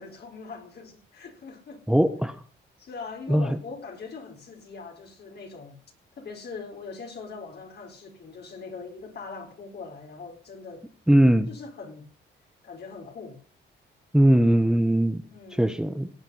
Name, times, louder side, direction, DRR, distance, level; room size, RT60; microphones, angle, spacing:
voice 1, 0.0-1.8 2.8-5.8 6.2-10.9 11.5-12.1 12.6-13.4 15.3-15.7, left 4 dB, 55° left, 4.5 m, -41 dB
voice 2, 1.9-2.4 3.3-3.6 11.1-11.5 14.1-15.2 15.6-16.1, right 1 dB, 5° right, 1.2 m, -20 dB
18.0 x 8.8 x 5.6 m
cardioid pair, 90°, 20 cm